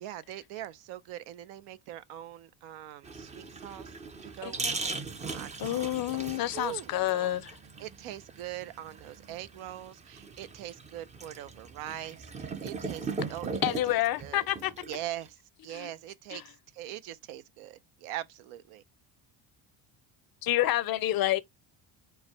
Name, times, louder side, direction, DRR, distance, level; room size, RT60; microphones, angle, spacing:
voice 1, 0.0-3.9 4.2-6.2 6.5-7.4 7.8-13.6 13.9-14.5 14.9-18.8, right 13 dB, 85° right, 0.6 m, -42 dB
sound 1, 3.0-15.3, right 4 dB, 15° right, 0.3 m, -39 dB
voice 2, 4.4-4.7 5.6-7.5 13.6-14.7 15.7-15.9 16.3-16.4 20.4-21.4, left 14 dB, 50° left, 0.5 m, -28 dB
4.6 x 2.2 x 4.5 m
cardioid pair, 110°, 49 cm